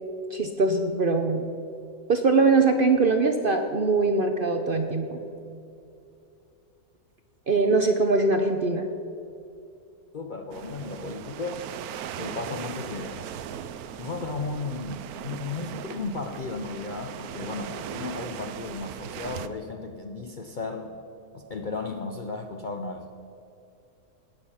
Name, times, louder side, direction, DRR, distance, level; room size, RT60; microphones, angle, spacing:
voice 1, 0.3-1.5 2.1-5.2 7.5-8.9, right 3 dB, 50° right, 6 dB, 0.7 m, -22 dB
voice 2, 10.1-11.6 12.2-13.3 14.0-21.0 21.3-23.1, left 3 dB, 50° left, 4 dB, 0.6 m, -34 dB
sound 1, 10.5-19.5, right 9 dB, 80° right, 1.1 m, -38 dB
18.5 x 6.8 x 5.6 m, 2.7 s
omnidirectional pair, 1.6 m